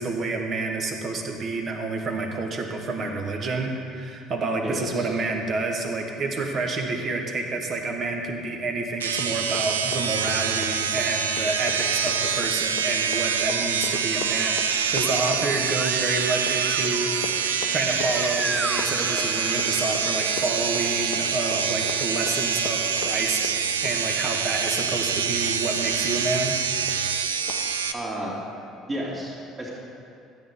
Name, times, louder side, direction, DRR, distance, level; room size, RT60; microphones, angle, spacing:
voice 1, 0.0-17.3 17.7-23.5 23.8-26.6, right 3 dB, 40° right, 3 dB, 1.1 m, -29 dB
voice 2, 4.6-5.1 27.9-28.3 28.9-29.7, right 1 dB, 25° right, -5 dB, 2.2 m, -32 dB
Run, 9.0-25.6 25.9-26.0 26.3-26.6 26.9-27.0 27.5-27.6, left 7 dB, 60° left, 0.6 m, -39 dB
sound 1, 9.0-27.9, right 6 dB, 75° right, 0.4 m, -26 dB
sound 2, 13.5-21.1, right 1 dB, 10° right, 0.4 m, -37 dB
12.5 x 8.0 x 3.6 m, 2.6 s
figure-of-eight pair, 55°, 0 cm